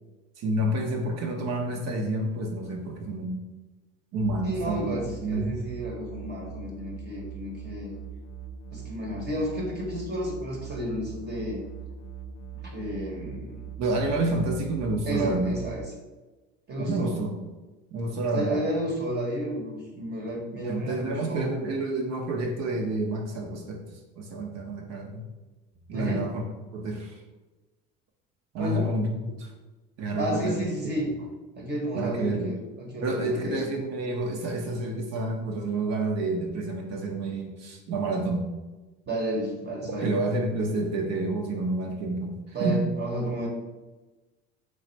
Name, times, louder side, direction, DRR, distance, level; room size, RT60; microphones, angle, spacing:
voice 1, 0.4-3.4 4.1-5.5 13.8-15.5 16.8-17.3 17.9-18.6 20.6-23.8 24.2-25.3 25.9-26.4 26.7-27.2 28.5-29.5 30.0-30.7 31.9-32.5 33.0-38.5 39.9-42.8, right 2 dB, 60° right, 1 dB, 0.6 m, -29 dB
sound 1, 4.2-15.8, right 6 dB, 85° left, 0.5 m, -41 dB
voice 2, 4.4-8.0 8.7-11.6 12.6-13.7 15.1-15.9 16.7-17.1 18.3-21.5 23.5-23.6 25.9-26.3 28.6-28.9 30.2-31.1 31.5-33.6 39.1-40.2 42.5-43.5, equal, 35° right, -1 dB, 0.9 m, -32 dB
3.3 x 2.3 x 3.9 m, 1.2 s
supercardioid pair, 95°, 30 cm